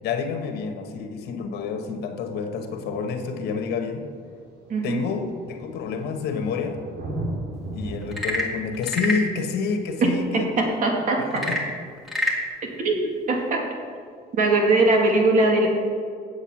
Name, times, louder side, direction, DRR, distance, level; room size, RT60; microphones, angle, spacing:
voice 1, 0.0-4.1 4.8-6.8 7.7-10.5 11.3-11.6, left 5 dB, 75° left, 5 dB, 1.2 m, -28 dB
Thunder, 2.7-2.8 3.7-3.8 4.0-11.3 13.0-13.1, right 1 dB, 75° right, 2.5 m, -38 dB
voice 2, 4.7-5.0 10.3-11.5 12.8-13.6 14.3-15.7, right 2 dB, 50° right, 1 dB, 2.1 m, -21 dB
Frog / Percussion / Wood, 8.0-9.3 11.3-12.5, left 1 dB, ahead, 1.8 m, -26 dB
8.1 x 7.8 x 6.0 m, 2.2 s
cardioid pair, 110°, 17 cm